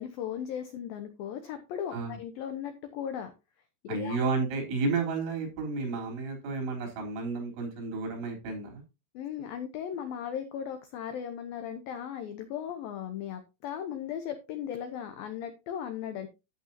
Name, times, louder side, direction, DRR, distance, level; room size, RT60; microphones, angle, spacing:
voice 1, 0.0-3.3 3.8-4.2 9.1-16.3, left 9 dB, 90° left, 7 dB, 2.0 m, -37 dB
voice 2, 3.9-8.8, right 4 dB, 75° right, 1 dB, 5.8 m, -32 dB
11.5 x 8.4 x 2.8 m, 0.27 s
omnidirectional pair, 5.4 m